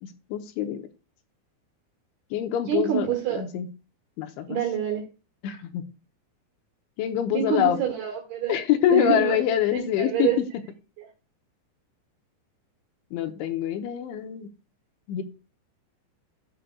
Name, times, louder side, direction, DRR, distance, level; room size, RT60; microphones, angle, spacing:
voice 1, 0.0-0.9 2.3-3.7 4.2-4.6 5.4-5.8 7.0-7.8 8.5-10.3 13.1-14.5 15.1-15.2, left 10 dB, 85° left, 6 dB, 3.2 m, -25 dB
voice 2, 2.7-3.4 4.5-5.1 7.3-8.6 8.9-9.4 9.7-10.4 11.0-11.1, right 9 dB, 70° right, 3 dB, 3.0 m, -26 dB
13.5 x 6.7 x 2.3 m, 0.31 s
omnidirectional pair, 5.3 m